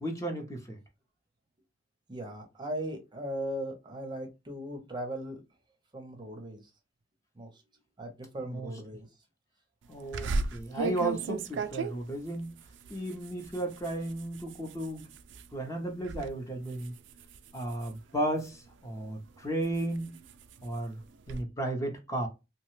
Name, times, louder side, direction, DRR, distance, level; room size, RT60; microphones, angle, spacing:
voice 1, 0.0-0.8 8.4-8.7 9.9-12.5 12.9-15.1 15.5-16.9 17.5-20.1 20.6-21.0 21.3-22.3, right 1 dB, 20° left, 0.6 m, -34 dB
voice 2, 2.1-5.4 5.9-6.6 7.4-7.6 8.0-9.1, right 1 dB, 25° right, 0.6 m, -38 dB
sound 1, 10.1-15.5 15.9-16.3 16.6-18.7 19.2-21.4, right 3 dB, 80° right, 0.4 m, -37 dB
2.8 x 2.2 x 3.0 m
head